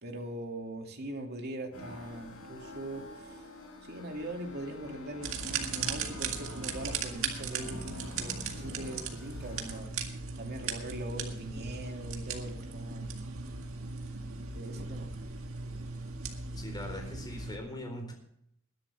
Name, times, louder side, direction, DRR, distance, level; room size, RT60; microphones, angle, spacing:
voice 1, 0.0-3.4 3.8-10.0 10.4-13.1 14.5-15.1, right 1 dB, 50° right, 2 dB, 2.5 m, -41 dB
sound 1, 1.7-9.8, left 1 dB, 70° left, 5.7 m, -47 dB
sound 2, 5.2-17.6, right 5 dB, 65° right, 2.0 m, -38 dB
voice 2, 16.6-18.1, left 1 dB, 20° left, 3 dB, 4.1 m, -41 dB
21.0 x 11.0 x 3.4 m, 0.71 s
head